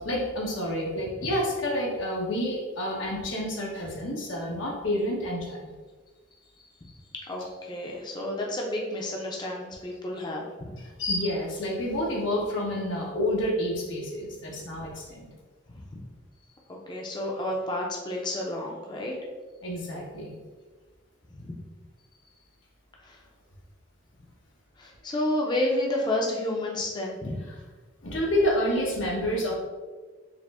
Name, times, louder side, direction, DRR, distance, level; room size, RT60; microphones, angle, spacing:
voice 1, 0.0-5.7 11.0-15.3 19.6-20.4 28.0-29.5, left 1 dB, 90° left, -2 dB, 1.0 m, -29 dB
voice 2, 6.6-10.8 16.7-19.1 21.3-21.6 23.0-23.2 24.8-27.4, left 1 dB, 25° left, -1 dB, 0.5 m, -31 dB
4.8 x 2.1 x 3.5 m, 1.3 s
head